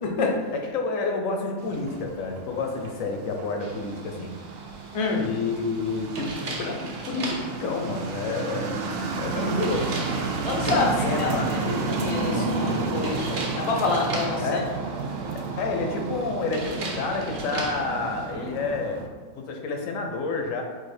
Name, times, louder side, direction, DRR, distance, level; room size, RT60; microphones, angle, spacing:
voice 1, 0.0-0.4 4.9-5.3 10.4-10.9 11.2-14.6, left 4 dB, 45° left, -1 dB, 0.4 m, -27 dB
voice 2, 0.5-4.3 5.2-10.1 10.7-11.5 12.3-12.5 14.4-14.7 15.6-19.0 19.3-20.6, left 3 dB, 75° left, 3 dB, 1.0 m, -29 dB
sound 1, 1.6-19.1, right 3 dB, 75° right, 1.0 m, -32 dB
sound 2, 3.6-18.3, right 3 dB, 50° right, 0.7 m, -38 dB
4.1 x 2.7 x 4.2 m, 1.5 s
omnidirectional pair, 1.4 m